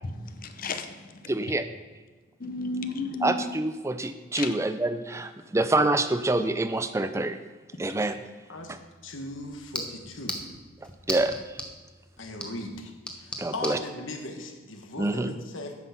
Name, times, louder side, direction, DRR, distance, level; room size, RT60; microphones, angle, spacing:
voice 1, 0.0-1.2 2.4-3.4 4.4-4.5, left 3 dB, 45° left, 8 dB, 0.6 m, -33 dB
voice 2, 1.3-1.7 3.2-7.4 7.8-8.2 8.7-8.8 11.1-11.4 13.4-13.8 15.0-15.4, right 2 dB, 15° right, 10 dB, 0.4 m, -26 dB
sound 1, 8.5-13.8, left 1 dB, 5° left, 0.8 m, -39 dB
voice 3, 9.0-10.5 12.2-15.7, left 2 dB, 75° left, 4 dB, 1.3 m, -38 dB
9.3 x 5.9 x 5.8 m, 1.3 s
head